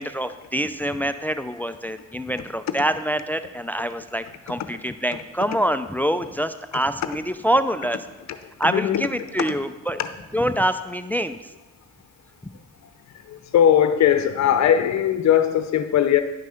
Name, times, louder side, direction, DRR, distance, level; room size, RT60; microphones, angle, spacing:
voice 1, 0.0-8.0 8.6-10.0 10.3-11.4, equal, 5° left, 11 dB, 0.4 m, -25 dB
voice 2, 8.6-9.1 9.4-9.5 10.0-10.1 13.3-16.2, left 9 dB, 65° left, 10 dB, 0.7 m, -19 dB
10.5 x 6.1 x 5.7 m, 1.1 s
cardioid pair, 90°, 30 cm